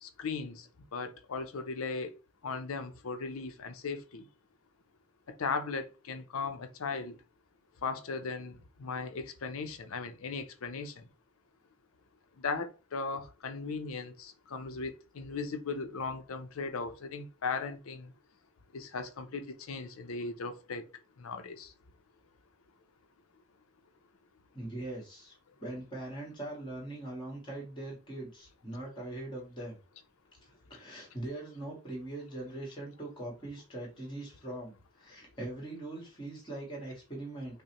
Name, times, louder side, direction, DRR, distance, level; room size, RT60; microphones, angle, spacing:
voice 1, 0.0-2.1 2.4-4.2 5.3-7.2 7.8-11.1 12.4-18.1 18.7-20.8 21.2-21.7, left 4 dB, 70° left, 0.6 m, -37 dB
voice 2, 24.5-25.3 25.6-29.8 30.4-37.6, right 1 dB, 20° left, 1.5 m, -41 dB
5.2 x 2.1 x 2.9 m
head